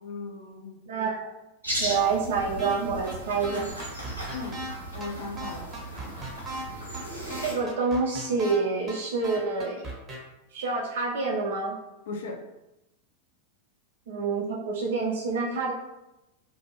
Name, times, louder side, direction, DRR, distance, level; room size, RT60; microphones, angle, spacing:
voice 1, 0.0-0.8 4.3-4.6 4.9-5.7 12.1-12.4, left 3 dB, 60° left, 3 dB, 0.4 m, -37 dB
voice 2, 0.9-1.2 1.8-3.7 7.4-9.8 10.5-11.7 14.1-15.7, right 4 dB, 55° right, -3 dB, 0.4 m, -27 dB
sound 1, 1.6-7.5, right 1 dB, 85° right, 0.7 m, -37 dB
sound 2, 2.6-7.4, left 1 dB, 85° left, 0.8 m, -45 dB
sound 3, 2.6-2.8 3.1-3.2 3.4-4.7 5.0-5.1 5.4-6.6 6.9-7.0 7.3-8.6 8.9-9.0 9.2-10.2, right 1 dB, 20° right, 0.7 m, -37 dB
2.5 x 2.2 x 2.8 m, 0.95 s
figure-of-eight pair, 90°, 0 cm